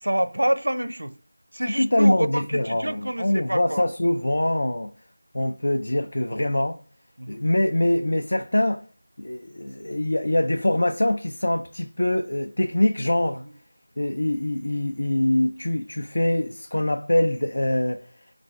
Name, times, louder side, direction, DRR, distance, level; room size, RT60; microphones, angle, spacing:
voice 1, 0.0-1.1 1.5-3.9 7.2-7.4 13.4-13.6, right 1 dB, 85° right, 0.5 m, -27 dB
voice 2, 1.8-4.9 5.3-6.8 7.3-8.8 9.2-13.4 14.0-18.0, left 1 dB, 65° left, 0.4 m, -23 dB
4.1 x 2.5 x 4.8 m
figure-of-eight pair, 175°, 0 cm